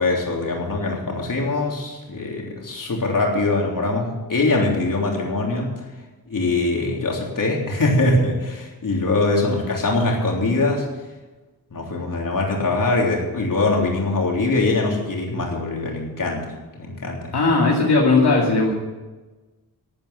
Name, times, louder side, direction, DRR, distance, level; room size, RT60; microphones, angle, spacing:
voice 1, 0.0-5.7 6.3-10.8 11.7-16.5 16.7-17.3, left 2 dB, 55° left, -1 dB, 3.6 m, -22 dB
voice 2, 17.3-18.7, left 3 dB, 85° left, -2 dB, 2.5 m, -17 dB
13.0 x 8.9 x 8.0 m, 1.2 s
wide cardioid pair, 105°, 38 cm